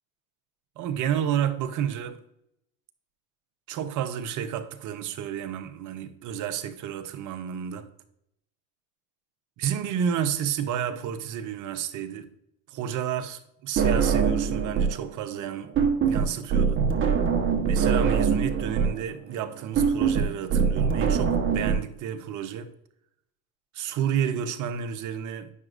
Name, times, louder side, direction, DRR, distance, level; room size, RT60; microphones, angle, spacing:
voice 1, 0.8-2.2 3.7-7.9 9.6-12.3 12.7-15.7 16.0-16.8 17.7-22.7 23.7-25.5, right 9 dB, 40° right, 0.8 m, -31 dB
sound 1, 13.8-15.0 15.3-21.8, right 6 dB, 25° right, 1.2 m, -23 dB
9.5 x 5.8 x 2.6 m
hypercardioid pair, 100°, 46 cm